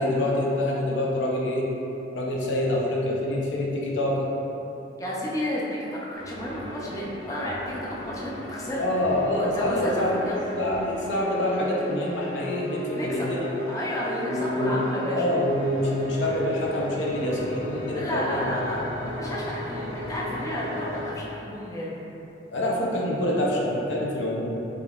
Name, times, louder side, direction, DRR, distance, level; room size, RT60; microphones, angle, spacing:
voice 1, 0.0-1.7 2.1-4.3 8.8-10.2 10.6-13.6 14.2-14.8 15.1-18.4 22.5-24.7, left 1 dB, 90° left, -3 dB, 0.6 m, -26 dB
voice 2, 5.0-8.8 9.5-10.4 12.9-13.3 13.7-15.2 17.9-22.0, left 1 dB, 20° left, -5 dB, 0.4 m, -32 dB
sound 1, 6.1-21.2, left 1 dB, 70° left, 0.9 m, -36 dB
3.5 x 3.5 x 2.4 m, 3.0 s
head